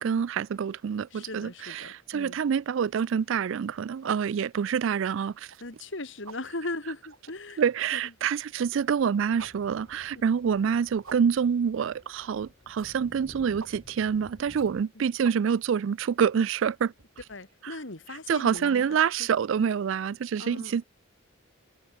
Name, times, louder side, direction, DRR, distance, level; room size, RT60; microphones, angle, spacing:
voice 1, 0.0-5.5 7.6-16.9 17.6-17.7 18.3-20.8, right 7 dB, 65° right, 0.3 m, -27 dB
voice 2, 1.1-2.4 5.6-7.6 7.9-8.1 17.3-19.3 20.4-20.8, left 2 dB, 60° left, 2.6 m, -39 dB
sound 1, 2.8-3.6 3.8-4.3 4.7-4.8 5.3-8.2 8.5-19.5, right 5 dB, 85° right, 1.9 m, -52 dB
sound 2, 8.9-14.8, left 1 dB, 35° left, 1.1 m, -53 dB
head